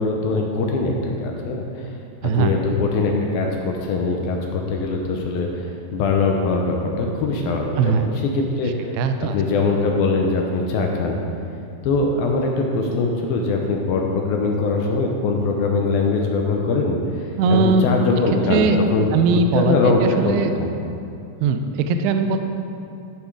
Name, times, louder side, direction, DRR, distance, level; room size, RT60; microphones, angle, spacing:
voice 1, 0.0-1.9 2.2-8.9 9.3-11.2 11.8-17.0 17.5-19.1 19.5-20.7, left 3 dB, 75° left, 1 dB, 2.2 m, -22 dB
voice 2, 7.8-8.1 8.9-9.4 17.4-17.9 18.5-18.8 19.1-20.5 21.4-22.4, right 5 dB, 85° right, 7 dB, 2.3 m, -19 dB
12.0 x 7.0 x 4.7 m, 2.6 s
omnidirectional pair, 5.0 m